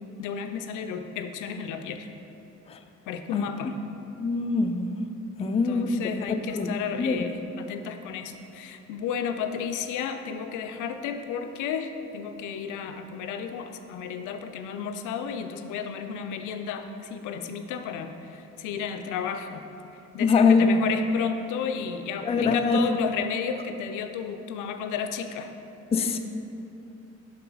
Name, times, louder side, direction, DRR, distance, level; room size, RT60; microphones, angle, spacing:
voice 1, 0.2-2.1 3.1-3.8 5.4-19.7 20.1-25.5, left 7 dB, 90° left, 7 dB, 0.5 m, -33 dB
voice 2, 4.2-4.9 5.4-5.9 6.3-7.2 20.2-20.7 22.3-22.8 25.9-26.2, left 5 dB, 20° left, 6 dB, 0.3 m, -23 dB
6.0 x 3.9 x 4.8 m, 2.8 s
cardioid pair, 90°, 30 cm